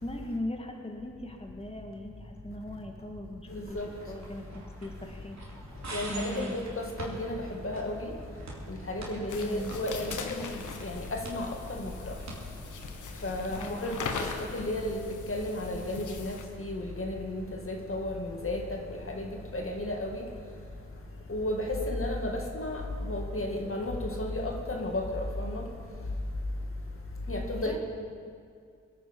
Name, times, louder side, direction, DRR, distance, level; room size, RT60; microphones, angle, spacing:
voice 1, 0.0-3.8 4.1-5.4 6.1-6.6 9.3-9.8 13.5-13.9 27.6-27.8, left 1 dB, 20° left, 2 dB, 1.9 m, -39 dB
voice 2, 3.5-3.9 5.9-8.1 8.7-10.5 10.8-12.2 13.2-14.1 14.5-15.0 15.3-20.2 21.3-22.8 23.1-25.6 27.3-27.8, left 1 dB, 45° left, 1 dB, 2.1 m, -33 dB
sound 1, 3.7-14.2, right 2 dB, 65° right, 3.3 m, -46 dB
sound 2, 9.3-16.4, left 5 dB, 85° left, 1.2 m, -40 dB
21.0 x 9.2 x 5.4 m, 2.2 s
supercardioid pair, 40°, 30 cm